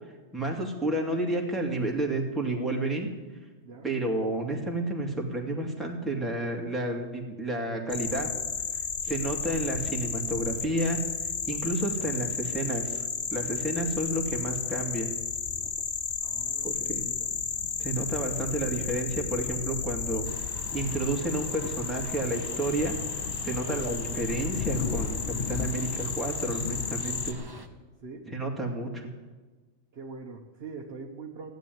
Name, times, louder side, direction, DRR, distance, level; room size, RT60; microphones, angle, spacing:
voice 1, 0.3-3.1 3.8-8.3 9.0-11.0 11.5-15.1 16.6-17.0 17.8-20.3 20.7-27.4 28.3-29.1, right 1 dB, ahead, -1 dB, 2.3 m, -31 dB
sound 1, 7.9-27.3, left 6 dB, 50° left, 1.1 m, -33 dB
voice 2, 16.2-17.3 18.3-18.4 23.5-23.7 28.0-28.3 29.9-31.5, right 4 dB, 55° right, 2 dB, 1.4 m, -43 dB
sound 2, 20.2-27.7, right 2 dB, 20° right, 1.0 m, -46 dB
15.5 x 9.2 x 9.4 m, 1.3 s
omnidirectional pair, 1.3 m